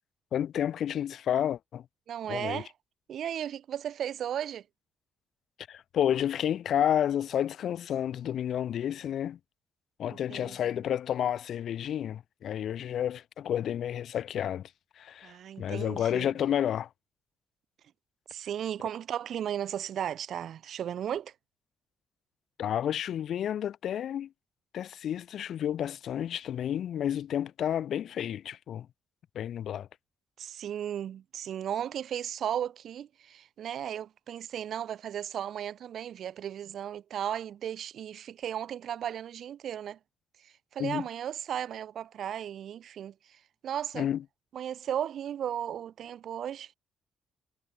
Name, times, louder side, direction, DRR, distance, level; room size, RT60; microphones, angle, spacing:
voice 1, 0.3-1.8 2.3-2.6 5.7-9.4 10.0-14.7 15.0-16.9 22.6-24.3 24.7-28.9 29.4-29.9 40.8-41.0 43.9-44.2, left 10 dB, 65° left, 0.4 m, -30 dB
voice 2, 2.1-2.7 3.1-4.6 10.0-10.6 15.2-16.3 18.3-21.3 30.4-40.0 40.4-44.1 44.5-46.7, right 10 dB, 65° right, 1.0 m, -35 dB
cardioid pair, 90°, 0 cm